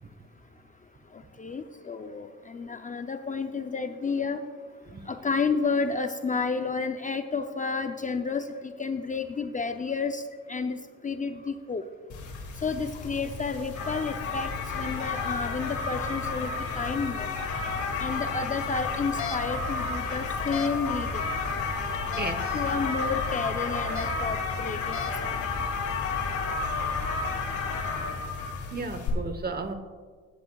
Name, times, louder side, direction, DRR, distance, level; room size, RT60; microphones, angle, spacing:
voice 1, 1.1-4.4 5.1-10.2 10.5-10.8 11.0-11.8 12.6-14.5 14.8-16.5 16.7-17.3 18.0-21.2 22.5-25.0 25.2-25.4 27.8-28.1, left 4 dB, 25° left, 7 dB, 0.5 m, -31 dB
sound 1, 12.1-29.1, left 4 dB, 75° left, 2.1 m, -31 dB
sound 2, 18.9-19.4 20.3-20.7 21.9-22.3 23.8-24.1 24.7-25.1, left 7 dB, 45° left, 1.0 m, -37 dB
voice 2, 22.2-22.7 28.7-29.7, right 3 dB, 30° right, 9 dB, 1.0 m, -34 dB
14.5 x 10.5 x 2.3 m, 1.5 s
cardioid pair, 90°, 30 cm